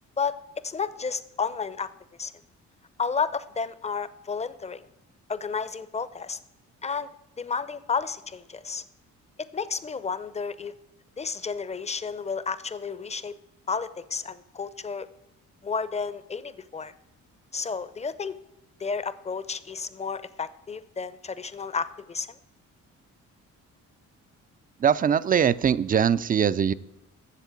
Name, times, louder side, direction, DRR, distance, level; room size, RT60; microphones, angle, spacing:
voice 1, 0.2-1.9 2.2-2.3 3.0-4.9 5.3-6.4 6.8-7.1 7.4-8.8 9.5-10.7 11.2-13.3 13.7-15.1 15.6-16.9 17.5-18.4 18.8-22.4, left 5 dB, 20° left, 15 dB, 0.6 m, -32 dB
voice 2, 24.8-26.7, right 8 dB, 30° right, 17 dB, 0.4 m, -22 dB
8.3 x 7.1 x 8.2 m, 0.88 s
cardioid pair, 90°, 30 cm